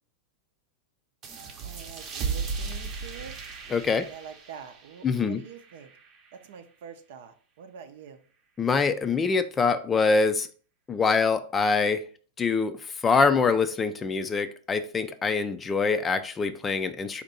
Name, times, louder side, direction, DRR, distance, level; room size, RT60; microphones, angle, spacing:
sound 1, 1.2-6.5, right 5 dB, 35° right, 0.8 m, -36 dB
voice 1, 1.6-3.3 4.0-5.9 6.3-8.2, right 7 dB, 65° right, 8 dB, 0.7 m, -45 dB
voice 2, 3.7-4.1 5.0-5.4 8.6-10.5 10.9-12.0 12.4-12.8 13.0-17.2, left 4 dB, 15° left, 10 dB, 0.4 m, -24 dB
4.3 x 2.7 x 4.0 m, 0.42 s
hypercardioid pair, 130°, 0 cm